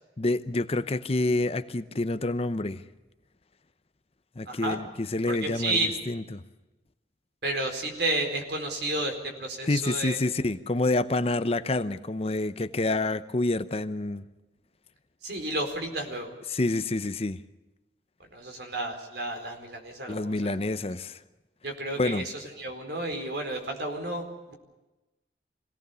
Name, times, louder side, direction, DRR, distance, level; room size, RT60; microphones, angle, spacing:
voice 1, 0.2-2.8 4.4-5.8 6.1-6.4 9.7-14.2 16.5-17.4 20.1-21.2 22.0-22.2, left 2 dB, 35° left, 12 dB, 0.8 m, -28 dB
voice 2, 4.4-4.8 5.3-5.9 7.4-10.2 15.2-16.3 18.3-20.6 21.6-24.5, right 2 dB, 65° right, 4 dB, 4.5 m, -32 dB
25.5 x 17.5 x 6.9 m, 1.1 s
head